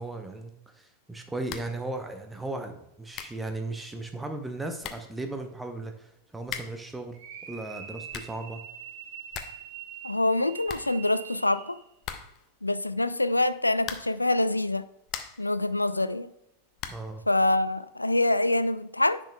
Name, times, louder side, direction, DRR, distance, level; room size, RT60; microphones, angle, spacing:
voice 1, 0.0-7.2 7.5-8.6 16.9-17.2, right 2 dB, 5° right, 6 dB, 0.7 m, -36 dB
sound 1, 1.5-1.8 2.1-2.2 2.8-2.9 3.1-3.5 4.4-4.5 4.8-5.2 6.4-6.9 7.8-8.5 8.8-8.9 9.1-9.7 9.9-10.0 10.3-10.4 10.6-11.4 12.0-12.5 13.8-14.3 14.8-15.5 16.8-17.2, left 9 dB, 35° left, 0.7 m, -40 dB
sound 2, 7.1-11.9, right 8 dB, 50° right, 1.1 m, -44 dB
voice 2, 10.0-11.8 12.6-14.9 15.4-16.3 17.3-19.2, left 2 dB, 85° left, 15 dB, 0.3 m, -25 dB
10.0 x 6.1 x 2.3 m, 0.86 s
figure-of-eight pair, 90°, 0 cm